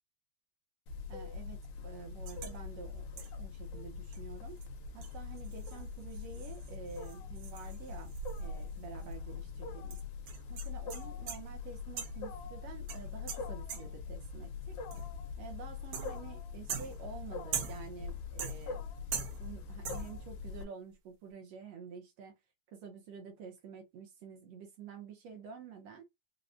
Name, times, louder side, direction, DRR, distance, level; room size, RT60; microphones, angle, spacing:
Wild animals, 0.9-20.6, left 5 dB, 75° left, 1.9 m, -43 dB
voice 1, 1.1-4.6 4.9-10.0 10.5-14.8 15.4-18.8 19.4-22.3 22.7-26.0, right 6 dB, 75° right, 1.5 m, -49 dB
sound 1, 2.3-2.6 3.2-3.5 4.1-4.2 4.6-4.7 5.0-8.8 9.0-9.1 9.9-11.6 12.0-12.3 12.9-14.1 14.9-15.3 15.9-16.3 16.7-18.0 18.4-18.9 19.1-19.6 19.8-20.2, right 7 dB, 90° right, 1.2 m, -43 dB
5.1 x 2.0 x 2.4 m
omnidirectional pair, 3.5 m